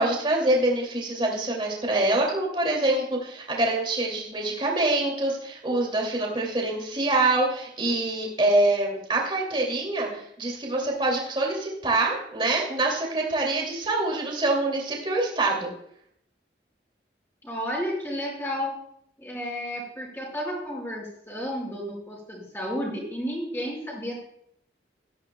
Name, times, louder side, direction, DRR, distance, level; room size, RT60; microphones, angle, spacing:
voice 1, 0.0-15.7, right 2 dB, 30° right, -1 dB, 2.4 m, -25 dB
voice 2, 17.4-18.7 19.2-24.2, equal, 15° left, -4 dB, 4.8 m, -32 dB
17.0 x 13.0 x 2.2 m, 0.70 s
head